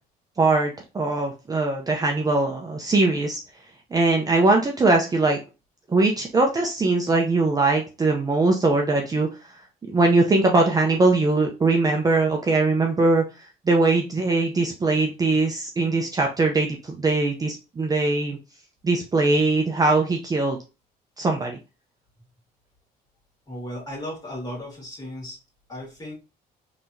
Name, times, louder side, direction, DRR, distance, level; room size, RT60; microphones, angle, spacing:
voice 1, 0.4-3.4 3.9-5.4 5.9-9.5 9.9-18.4 18.8-20.6 21.2-21.6, right 3 dB, 20° right, 2 dB, 0.5 m, -21 dB
voice 2, 23.5-25.4 25.7-26.1, left 1 dB, 25° left, -3 dB, 2.0 m, -35 dB
3.5 x 2.9 x 2.6 m, 0.29 s
cardioid pair, 110°, 17 cm